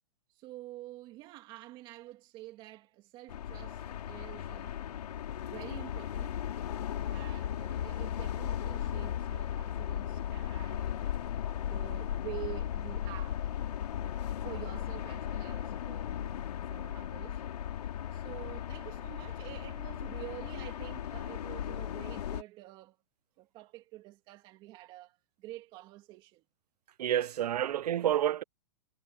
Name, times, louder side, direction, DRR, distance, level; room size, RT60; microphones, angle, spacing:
voice 1, 0.3-4.8 5.4-6.4 7.1-11.1 11.6-13.4 14.4-17.4 18.1-23.0 23.4-26.4, right 17 dB, 25° right, 2.5 m, -48 dB
sound 1, 3.3-22.4, left 10 dB, 70° left, 4.2 m, -36 dB
voice 2, 27.0-28.4, right 11 dB, 75° right, 0.6 m, -29 dB
hypercardioid pair, 170°, 21 cm